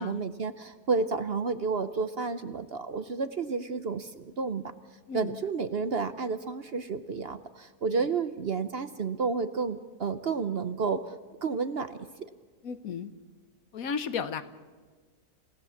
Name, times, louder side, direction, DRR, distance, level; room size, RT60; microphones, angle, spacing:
voice 1, 0.0-4.7 5.1-12.0, right 4 dB, 50° right, 11 dB, 0.9 m, -31 dB
voice 2, 5.1-5.4 12.6-13.1 13.7-14.4, left 6 dB, 70° left, 12 dB, 1.4 m, -34 dB
28.5 x 16.5 x 7.2 m, 1.4 s
omnidirectional pair, 1.6 m